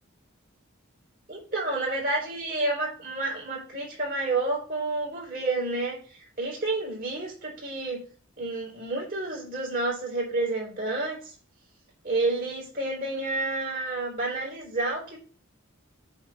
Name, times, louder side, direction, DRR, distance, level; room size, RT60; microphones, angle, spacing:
voice 1, 1.3-8.0 8.4-11.3 12.0-15.2, right 2 dB, 45° right, -3 dB, 4.7 m, -30 dB
8.7 x 3.8 x 6.1 m, 0.40 s
head